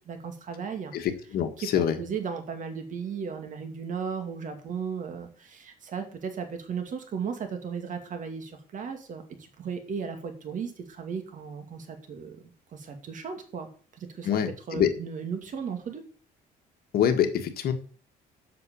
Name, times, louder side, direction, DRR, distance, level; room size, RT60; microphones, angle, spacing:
voice 1, 0.1-0.9 1.6-1.7 2.0-13.7 14.0-14.3 14.7-16.0, right 6 dB, 50° right, 5 dB, 2.3 m, -36 dB
voice 2, 0.9-2.0 14.2-14.9 16.9-17.7, left 9 dB, 65° left, 7 dB, 1.6 m, -25 dB
7.9 x 6.5 x 7.0 m, 0.40 s
cardioid pair, 110°, 17 cm